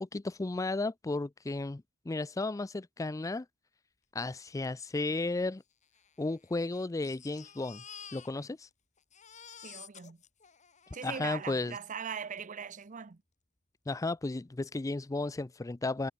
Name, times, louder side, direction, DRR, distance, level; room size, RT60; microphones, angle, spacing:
voice 1, 0.0-3.5 4.1-5.6 6.2-7.8 8.1-8.7 11.0-11.7 13.9-16.1, left 2 dB, 15° left, 0.4 m, -34 dB
Crying sobbing, 4.6-4.7 4.9-5.0 5.8-8.7 9.0-11.5 12.4-12.5 12.8-12.9, left 8 dB, 35° left, 3.1 m, -52 dB
voice 2, 9.6-10.2 10.9-13.2, right 6 dB, 40° right, 0.6 m, -40 dB
head